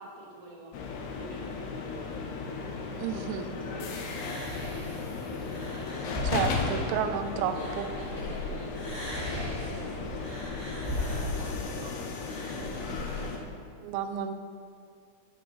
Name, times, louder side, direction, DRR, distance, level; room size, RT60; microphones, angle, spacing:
voice 1, 0.0-6.2 6.7-6.9 7.3-12.0 12.3-13.5, right 2 dB, 55° right, -1 dB, 1.7 m, -47 dB
sound 1, 0.7-13.4, left 4 dB, 80° left, 3.0 m, -36 dB
voice 2, 3.0-3.5 6.2-7.9 13.8-14.3, right 9 dB, 85° right, 8 dB, 2.0 m, -31 dB
sound 2, 4.0-8.4 8.7-13.2, left 1 dB, 15° right, 2.2 m, -37 dB
12.5 x 6.9 x 4.8 m, 2.3 s
omnidirectional pair, 4.8 m